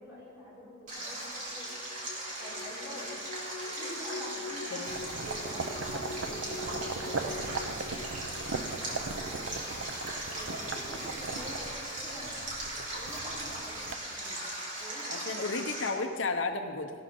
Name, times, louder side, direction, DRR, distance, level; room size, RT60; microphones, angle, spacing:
voice 1, 0.0-1.7 2.4-3.2 3.8-4.8 5.1-9.5 10.2-11.7 12.0-12.4 12.9-14.4 14.8-15.6, equal, 10° right, -8 dB, 4.3 m, -47 dB
Stream, 0.9-15.9, right 1 dB, 40° right, 3.3 m, -38 dB
sound 1, 1.6-9.5, left 4 dB, 45° left, 0.4 m, -45 dB
sound 2, 4.9-13.9, right 4 dB, 85° right, 0.7 m, -39 dB
voice 2, 15.1-16.9, left 3 dB, 75° left, 6 dB, 0.8 m, -33 dB
17.0 x 12.5 x 3.8 m, 2.2 s
head